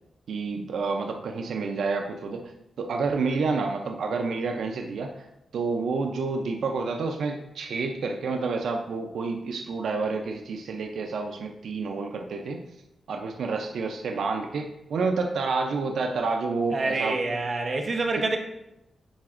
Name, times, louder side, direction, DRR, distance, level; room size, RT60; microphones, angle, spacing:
voice 1, 0.3-2.5 2.8-5.1 5.5-12.6 13.1-17.2 18.2-18.3, right 4 dB, 75° right, 3 dB, 0.5 m, -29 dB
voice 2, 16.7-18.4, right 3 dB, 35° right, 2 dB, 0.8 m, -27 dB
10.0 x 4.8 x 2.5 m, 0.89 s
wide cardioid pair, 170°, 0 cm